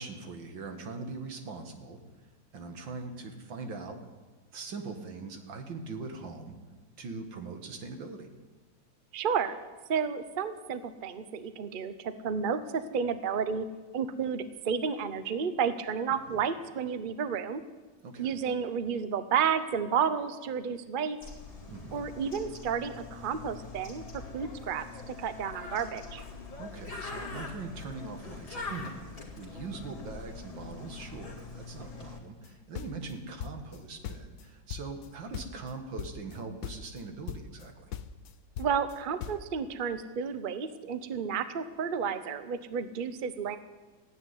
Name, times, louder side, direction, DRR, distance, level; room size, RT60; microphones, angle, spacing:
voice 1, 0.0-2.0 2.5-4.0 4.5-6.6 7.0-8.3 16.3-16.4 18.0-18.4 21.7-22.1 26.6-37.9, right 4 dB, 75° right, 5 dB, 2.3 m, -41 dB
voice 2, 9.1-9.6 9.9-13.7 13.9-17.6 18.2-21.2 21.9-26.2 38.6-43.6, right 7 dB, 45° right, 12 dB, 0.6 m, -31 dB
Bird, 21.2-32.2, left 3 dB, 30° left, 2.7 m, -43 dB
sound 1, 32.4-33.8 34.0-35.1 35.3-35.7 36.0-36.4 36.6-37.0 37.3-37.7 37.9-39.5, left 9 dB, 60° left, 1.0 m, -40 dB
15.0 x 10.0 x 9.5 m, 1.3 s
omnidirectional pair, 2.1 m